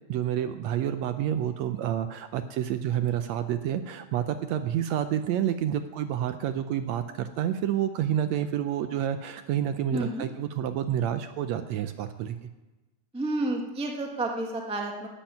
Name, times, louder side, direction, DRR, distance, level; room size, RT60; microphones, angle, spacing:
voice 1, 0.1-12.4, right 10 dB, 75° right, 9 dB, 1.7 m, -29 dB
voice 2, 9.9-10.2 13.1-15.1, right 2 dB, 5° right, 1 dB, 0.6 m, -30 dB
13.0 x 8.9 x 9.1 m, 1.1 s
omnidirectional pair, 3.5 m